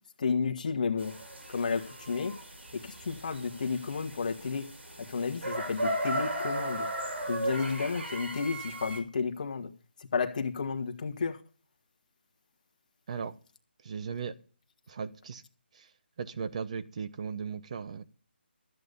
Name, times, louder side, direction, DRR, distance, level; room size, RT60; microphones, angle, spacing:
voice 1, 0.2-1.1 1.5-2.4 2.7-4.7 5.1-6.9 7.3-9.7 10.1-11.4, left 5 dB, 45° left, 1.4 m, -32 dB
sound 1, 1.0-9.0, right 1 dB, 90° right, 5.6 m, -36 dB
voice 2, 13.8-14.3 14.9-15.4 15.7-15.9 16.2-18.0, right 6 dB, 35° right, 0.9 m, -37 dB
13.5 x 8.2 x 5.4 m
figure-of-eight pair, 165°, 6 cm